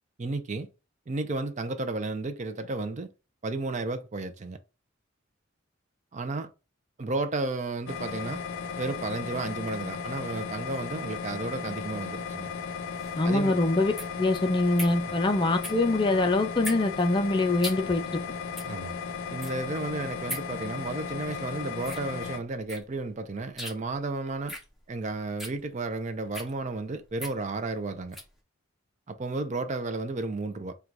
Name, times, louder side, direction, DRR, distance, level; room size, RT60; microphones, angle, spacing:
voice 1, 0.2-0.7 1.1-3.1 3.4-4.6 6.1-6.5 7.0-8.4 8.8-12.5 13.2-13.6 15.1-15.2 18.7-19.0 19.3-24.6 24.9-28.2 29.1-30.7, right 3 dB, 35° right, 0.4 m, -33 dB
sound 1, 7.9-22.4, left 6 dB, 85° left, 0.6 m, -36 dB
sound 2, 12.9-28.4, equal, ahead, 0.8 m, -42 dB
voice 2, 13.2-13.9 14.2-18.2, left 2 dB, 25° left, 0.4 m, -24 dB
3.8 x 2.3 x 4.5 m
head